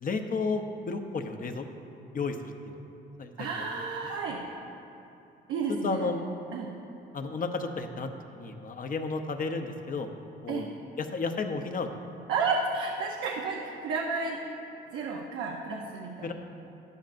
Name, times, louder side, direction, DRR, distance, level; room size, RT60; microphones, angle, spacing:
voice 1, 0.0-1.7 2.1-2.8 3.2-3.5 5.7-6.2 7.1-10.1 10.4-10.6 11.0-11.9 16.2-16.3, left 4 dB, 45° left, 6 dB, 0.8 m, -32 dB
voice 2, 3.4-4.5 5.5-6.1 6.5-6.7 10.5-10.7 12.3-14.4 14.9-16.3, right 4 dB, 85° right, 0 dB, 0.8 m, -32 dB
13.0 x 10.5 x 2.6 m, 2.8 s
cardioid pair, 90°, 20 cm